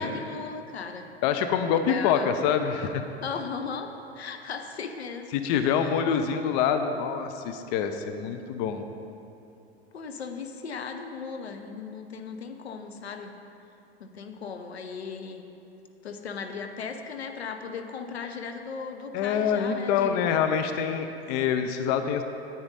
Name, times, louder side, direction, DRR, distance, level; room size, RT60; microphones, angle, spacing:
voice 1, 0.0-1.1 1.9-2.3 3.2-5.3 9.9-13.3 14.0-15.5 16.0-20.5, left 5 dB, 75° left, 6 dB, 0.8 m, -37 dB
voice 2, 1.2-3.0 5.3-8.8 19.1-22.2, left 7 dB, 40° left, 8 dB, 0.6 m, -26 dB
9.9 x 8.7 x 4.1 m, 2.7 s
figure-of-eight pair, 95°, 32 cm